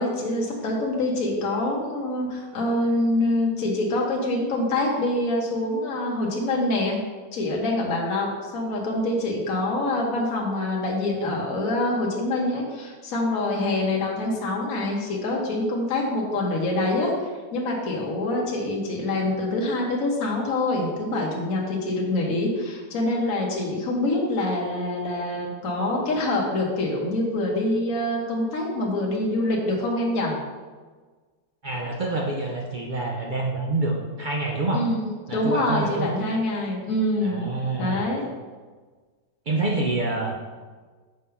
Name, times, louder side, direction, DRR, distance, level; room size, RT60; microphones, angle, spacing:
voice 1, 0.0-7.0 7.3-30.4 34.7-37.5 37.8-38.2, left 2 dB, 55° left, -1 dB, 1.5 m, -25 dB
voice 2, 31.6-34.8 35.3-36.1 37.2-38.1 39.5-40.5, right 2 dB, 80° right, -2 dB, 0.4 m, -27 dB
6.6 x 3.6 x 5.5 m, 1.4 s
omnidirectional pair, 1.9 m